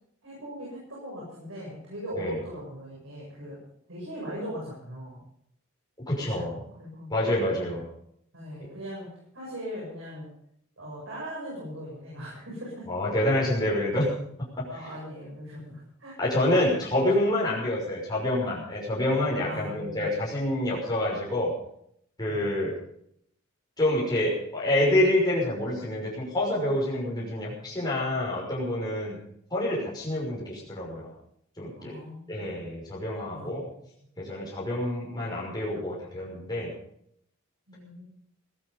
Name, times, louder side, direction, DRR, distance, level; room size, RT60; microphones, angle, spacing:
voice 1, 0.2-3.6 3.9-5.2 6.3-7.1 8.3-9.1 9.3-10.3 10.8-12.8 14.7-16.4 19.4-20.2 22.3-22.5 31.7-32.6 33.3-33.8 37.7-38.0, equal, 65° right, -5 dB, 7.6 m, -39 dB
voice 2, 6.1-6.5 7.1-7.8 12.9-14.1 14.4-14.6 16.2-21.5 22.2-22.8 23.8-29.2 29.5-31.1 31.6-32.0 32.3-33.6 34.2-36.7, left 1 dB, 20° left, -5 dB, 6.0 m, -27 dB
18.5 x 13.5 x 5.4 m, 0.72 s
head